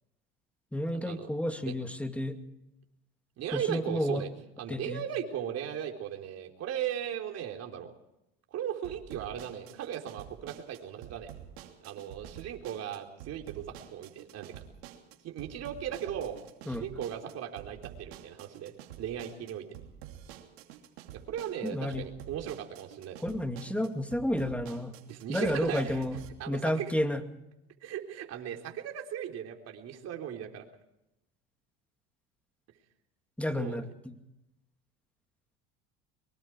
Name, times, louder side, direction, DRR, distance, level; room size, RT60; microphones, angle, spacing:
voice 1, 0.7-2.4 3.5-4.2 4.7-5.0 16.7-16.8 21.6-22.1 23.2-24.9 25.3-26.2 26.5-27.2 33.4-33.9, left 1 dB, 5° left, 6 dB, 2.5 m, -31 dB
voice 2, 3.4-4.3 4.6-7.9 8.5-11.3 11.8-14.6 15.2-16.4 16.6-19.8 21.1-23.2 25.1-26.1 26.4-26.9 27.8-30.7 33.6-33.8, right 10 dB, 55° right, 3 dB, 3.9 m, -37 dB
sound 1, 8.8-26.3, right 10 dB, 85° right, 2.9 m, -49 dB
23.5 x 23.5 x 4.7 m, 0.89 s
supercardioid pair, 90°, 30 cm